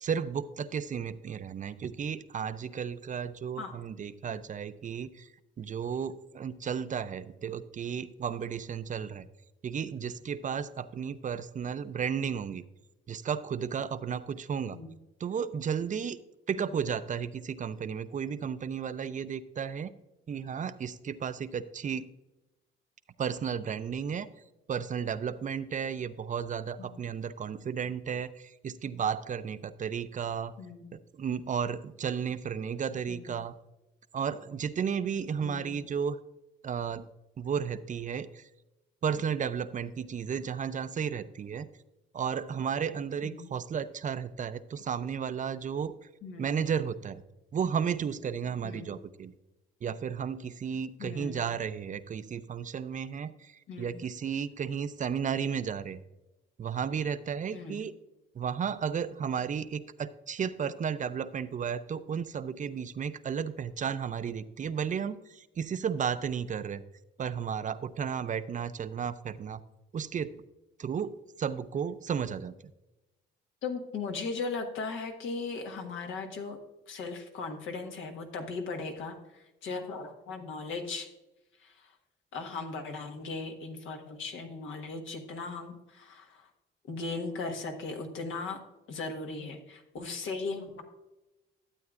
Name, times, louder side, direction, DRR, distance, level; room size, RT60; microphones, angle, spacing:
voice 1, 0.0-5.3 5.6-9.3 9.6-12.6 13.1-14.8 15.2-16.2 16.5-19.9 20.3-22.1 23.2-24.3 24.7-30.5 31.2-33.5 34.1-36.2 36.6-37.1 37.4-38.5 39.0-41.7 42.1-45.9 46.4-47.2 47.5-49.3 49.8-56.0 56.6-57.9 58.3-66.8 67.2-69.6 69.9-70.3 70.8-72.5, right 7 dB, 40° right, 13 dB, 0.5 m, -33 dB
voice 2, 35.4-35.7 43.2-43.5 46.2-46.5 48.6-48.9 51.0-51.4 53.7-54.0 57.5-57.8 73.6-76.6 76.9-81.1 81.6-81.9 82.3-86.5 86.9-88.6 88.9-90.8, left 4 dB, 80° left, 4 dB, 1.5 m, -38 dB
12.5 x 8.4 x 2.5 m, 1.0 s
cardioid pair, 90°, 20 cm